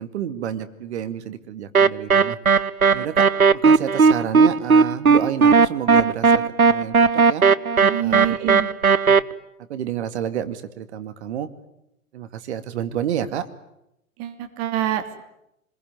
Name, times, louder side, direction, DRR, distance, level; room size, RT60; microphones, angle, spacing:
voice 1, 0.0-2.4 2.9-7.4 8.0-8.5 9.1-9.2 9.7-11.5 12.1-13.5, right 9 dB, 50° right, 10 dB, 2.2 m, -30 dB
sound 1, 1.7-9.2, right 5 dB, 90° right, 0.9 m, -16 dB
voice 2, 7.8-8.7 14.2-15.2, right 11 dB, 35° right, 7 dB, 3.0 m, -26 dB
25.5 x 22.0 x 9.5 m, 0.82 s
figure-of-eight pair, 110°, 42 cm